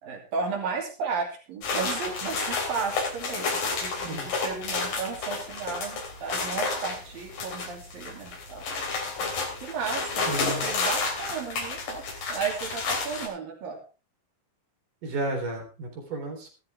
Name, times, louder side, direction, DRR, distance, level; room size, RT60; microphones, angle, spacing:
voice 1, 0.0-8.6 9.6-13.8, right 5 dB, 85° right, 1 dB, 4.5 m, -34 dB
sound 1, 1.6-13.3, left 4 dB, 75° left, 5.0 m, -31 dB
voice 2, 10.3-10.7 15.0-16.5, right 2 dB, 65° right, 2 dB, 5.4 m, -32 dB
16.0 x 13.5 x 3.5 m, 0.33 s
omnidirectional pair, 3.9 m